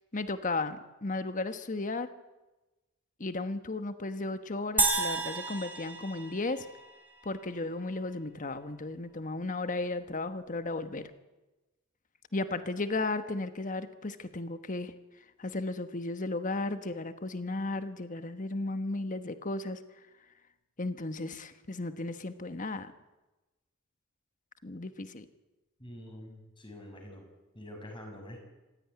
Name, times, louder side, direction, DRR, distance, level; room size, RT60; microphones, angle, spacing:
voice 1, 0.1-2.1 3.2-6.7 7.2-11.1 12.3-14.9 15.4-19.8 20.8-22.9 24.6-25.3, left 2 dB, 40° left, 10 dB, 1.3 m, -34 dB
sound 1, 4.8-7.2, right 3 dB, 10° right, 3.5 m, -31 dB
voice 2, 25.8-27.2 27.5-28.4, left 1 dB, 25° left, 2 dB, 6.7 m, -46 dB
27.0 x 16.5 x 9.6 m, 1.1 s
head